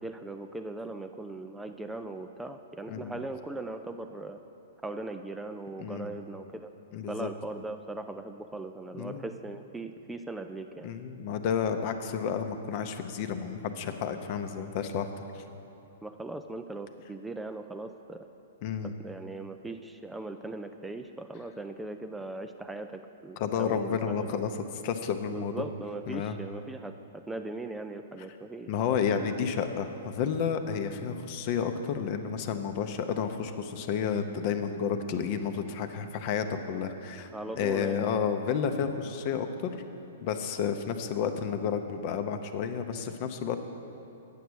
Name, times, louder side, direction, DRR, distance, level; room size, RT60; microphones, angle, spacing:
voice 1, 0.0-4.4 4.8-6.7 7.1-10.9 16.0-18.3 18.8-24.4 25.3-28.7 37.3-38.1, right 2 dB, 5° right, 7 dB, 0.3 m, -39 dB
voice 2, 2.9-3.2 5.8-6.1 6.9-7.3 9.0-9.2 10.8-15.1 15.3-15.4 18.6-18.9 23.4-24.5 24.8-25.7 26.1-26.4 28.7-37.3 37.6-39.9 40.2-43.6, left 7 dB, 45° left, 7 dB, 0.7 m, -31 dB
9.2 x 6.9 x 6.2 m, 3.0 s
hypercardioid pair, 115°, 0 cm